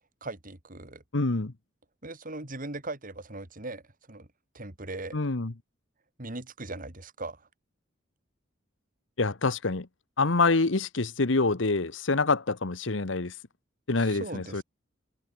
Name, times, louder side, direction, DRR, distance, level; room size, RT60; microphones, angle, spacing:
voice 1, 0.2-1.0 2.0-3.8 4.1-4.3 4.5-5.2 6.2-7.5 14.0-14.6, right 2 dB, 45° right, 3.7 m, -39 dB
voice 2, 1.1-1.5 5.1-5.5 9.2-9.9 10.2-13.3 13.9-14.6, left 3 dB, 75° left, 1.2 m, -26 dB
head